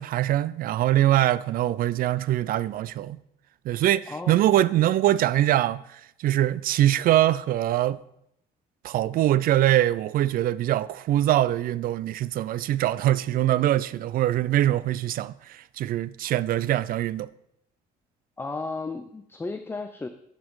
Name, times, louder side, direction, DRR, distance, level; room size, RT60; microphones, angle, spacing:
voice 1, 0.0-3.2 3.7-5.8 6.2-8.0 8.8-17.3, right 13 dB, 60° right, 0.4 m, -23 dB
voice 2, 4.1-4.4 18.4-20.1, left 3 dB, 15° left, 0.5 m, -34 dB
11.0 x 5.3 x 4.7 m
cardioid pair, 110°, 17 cm